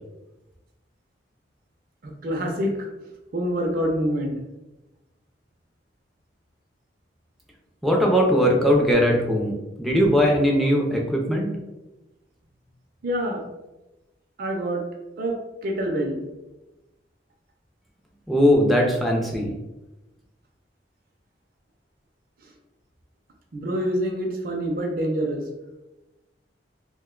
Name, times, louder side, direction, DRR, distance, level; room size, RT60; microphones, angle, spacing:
voice 1, 2.0-2.9 3.3-4.4 13.0-13.5 14.4-14.8 15.2-16.2 23.5-25.4, equal, 50° right, 1 dB, 0.5 m, -26 dB
voice 2, 7.8-11.5 18.3-19.5, equal, ahead, -1 dB, 0.5 m, -20 dB
2.6 x 2.2 x 3.6 m, 1.0 s
head